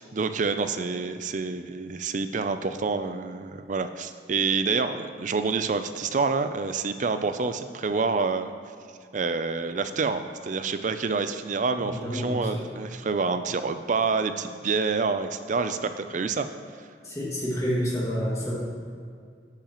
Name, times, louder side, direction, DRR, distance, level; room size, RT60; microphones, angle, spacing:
voice 1, 0.0-8.5 9.1-16.5, right 4 dB, 45° right, 10 dB, 0.4 m, -27 dB
voice 2, 11.8-12.6 17.0-18.6, equal, 20° left, -6 dB, 2.1 m, -28 dB
10.5 x 8.7 x 3.0 m, 2.2 s
head